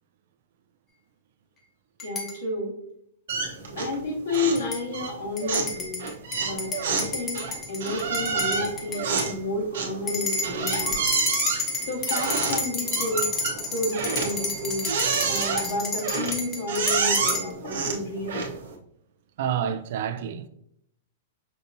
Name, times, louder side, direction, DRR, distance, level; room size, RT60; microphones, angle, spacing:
voice 1, 2.0-2.8 3.8-6.0 6.4-7.4 7.7-11.0 11.8-13.3 13.7-14.9 15.3-18.4, left 2 dB, 75° left, 1.6 m, -31 dB
sound 1, 2.0-2.3 3.3-3.4 4.3-4.8 5.4-9.3 10.1-17.5, left 3 dB, 20° left, 0.8 m, -31 dB
sound 2, 3.3-4.0 4.3-4.7 4.9-18.7, right 5 dB, 80° right, 0.8 m, -29 dB
voice 2, 19.4-20.5, right 8 dB, 60° right, 0.4 m, -29 dB
5.6 x 2.6 x 2.6 m
hypercardioid pair, 135°, 0 cm